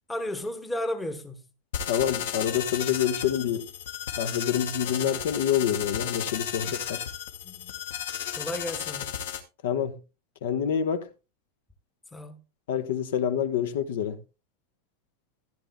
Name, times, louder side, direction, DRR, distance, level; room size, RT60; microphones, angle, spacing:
voice 1, 0.1-1.4 7.4-7.8 8.4-9.2 12.1-12.4, left 1 dB, 5° left, 1.0 m, -33 dB
sound 1, 1.7-9.4, left 9 dB, 90° left, 2.0 m, -34 dB
voice 2, 1.9-3.7 4.2-7.0 9.6-10.0 10.4-11.1 12.7-14.2, left 9 dB, 75° left, 1.1 m, -27 dB
15.5 x 10.5 x 2.3 m
supercardioid pair, 180°, 0 cm